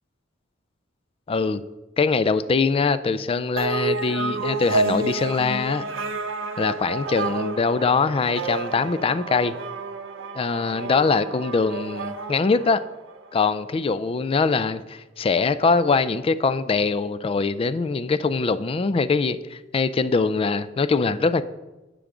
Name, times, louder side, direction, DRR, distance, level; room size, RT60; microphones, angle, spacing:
voice 1, 1.3-1.6 2.0-5.8 6.6-9.5 10.4-12.8 13.3-21.4, left 4 dB, 30° left, 0.3 m, -23 dB
sound 1, 3.6-13.3, right 3 dB, 75° right, 0.7 m, -30 dB
10.0 x 3.8 x 6.0 m
head